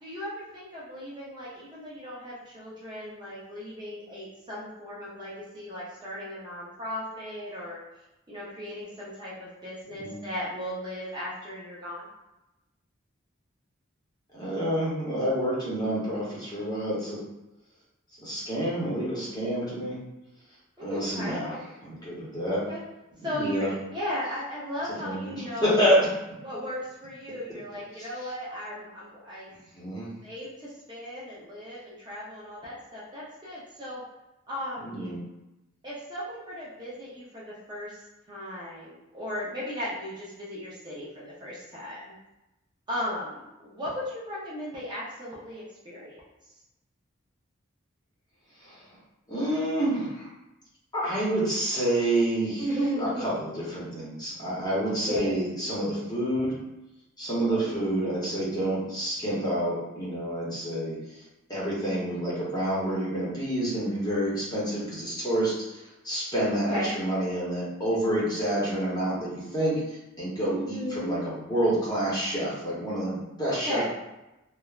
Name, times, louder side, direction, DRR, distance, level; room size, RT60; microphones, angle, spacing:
voice 1, 0.0-7.8 8.3-12.1 20.8-21.6 22.5-22.8 23.2-25.9 26.4-29.5 30.2-34.0 34.5-35.1 35.8-38.0 38.3-42.1 42.9-46.2 52.6-53.3 54.9-55.4 57.4-58.2 66.5-66.9 70.5-71.2 73.5-73.8, equal, 20° right, -8 dB, 0.5 m, -36 dB
voice 2, 14.3-17.2 18.2-20.0 20.8-21.5 21.8-22.6 23.4-23.7 25.0-26.0 29.8-30.1 34.8-35.2 48.6-48.8 49.3-50.3 50.9-52.7 53.0-56.5 57.2-61.0 61.5-65.8 66.0-69.8 70.2-73.8, right 1 dB, 20° left, -7 dB, 0.8 m, -28 dB
3.2 x 2.0 x 2.3 m, 0.97 s
head